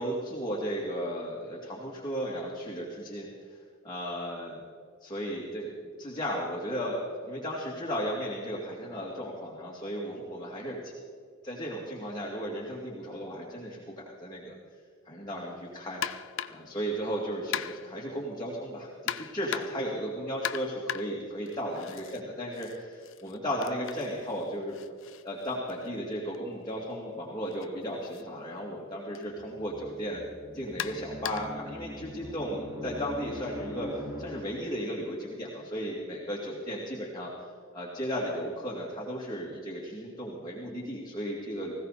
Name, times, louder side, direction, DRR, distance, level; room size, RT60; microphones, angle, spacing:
voice 1, 0.0-3.6 3.8-4.6 5.0-7.0 7.3-10.9 11.4-14.5 15.0-16.0 16.5-24.8 25.2-30.2 30.5-37.3 37.7-41.7, equal, 20° left, -5 dB, 2.4 m, -35 dB
sound 1, 16.0-16.7 17.5-18.0 19.1-19.9 20.4-22.2 22.5-26.4 27.5-27.7 28.1-28.2 29.2-29.3 30.8-31.6, left 9 dB, 60° left, 0.6 m, -38 dB
sound 2, 29.3-34.8, left 1 dB, 10° right, 2.5 m, -42 dB
20.0 x 16.5 x 4.2 m, 2.1 s
head